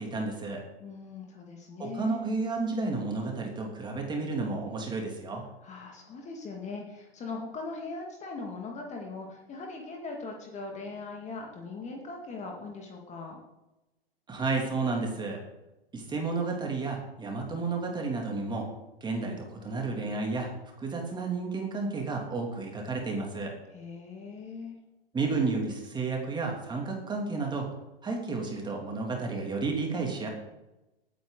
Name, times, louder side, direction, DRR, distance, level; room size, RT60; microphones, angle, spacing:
voice 1, 0.0-0.6 1.8-5.4 14.3-15.4 15.9-18.7 19.0-20.5 20.8-23.5 25.1-27.7 28.0-30.3, right 3 dB, 15° right, 1 dB, 2.8 m, -31 dB
voice 2, 0.8-2.2 5.6-13.4 23.7-24.8, left 3 dB, 20° left, 1 dB, 2.2 m, -40 dB
18.0 x 9.3 x 4.0 m, 0.99 s
hypercardioid pair, 115°, 31 cm